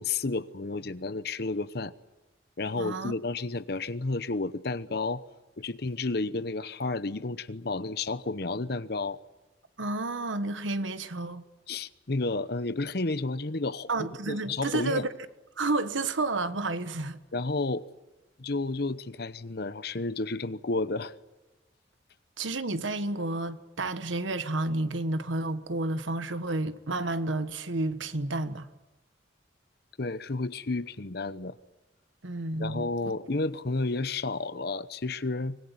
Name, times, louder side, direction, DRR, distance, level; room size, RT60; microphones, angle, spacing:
voice 1, 0.0-1.9 2.6-5.2 5.6-9.2 11.7-13.9 14.3-15.0 17.3-17.8 18.4-21.1 30.0-31.6 32.6-35.6, left 3 dB, 55° left, 0.9 m, -31 dB
voice 2, 2.8-3.1 9.8-11.4 13.9-15.1 15.6-17.2 22.4-28.7 32.2-33.1, right 2 dB, 80° right, 1.4 m, -31 dB
25.0 x 20.5 x 9.7 m
head